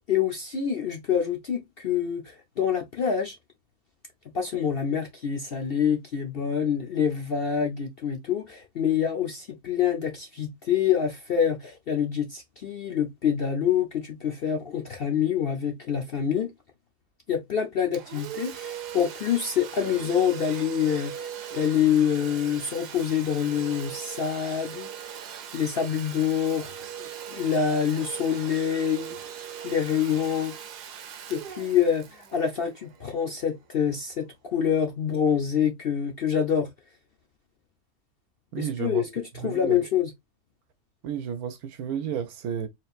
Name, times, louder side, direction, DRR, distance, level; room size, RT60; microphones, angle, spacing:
voice 1, 0.1-3.4 4.3-16.5 17.3-25.2 25.5-26.7 27.3-29.2 29.6-30.5 31.3-36.7 38.6-40.1, left 8 dB, 55° left, 0.7 m, -26 dB
Domestic sounds home sounds, 17.9-33.4, right 8 dB, 85° right, 1.4 m, -39 dB
voice 2, 38.5-39.0 39.4-39.8 41.0-42.7, right 8 dB, 70° right, 1.2 m, -32 dB
4.5 x 3.4 x 2.4 m
omnidirectional pair, 1.7 m